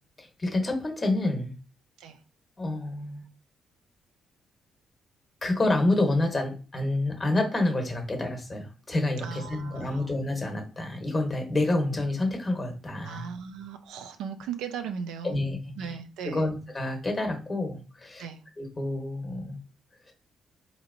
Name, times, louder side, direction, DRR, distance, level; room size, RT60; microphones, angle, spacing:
voice 1, 0.2-1.6 2.6-3.2 5.4-13.3 15.2-16.0 16.2-18.3 18.6-19.6 20.1-20.2, left 2 dB, 25° left, 3 dB, 1.1 m, -28 dB
voice 2, 9.2-10.1 13.0-15.4 15.8-16.5 18.2-18.4, right 7 dB, 90° right, 8 dB, 0.4 m, -37 dB
4.0 x 2.9 x 2.6 m, 0.35 s
cardioid pair, 90°, 0 cm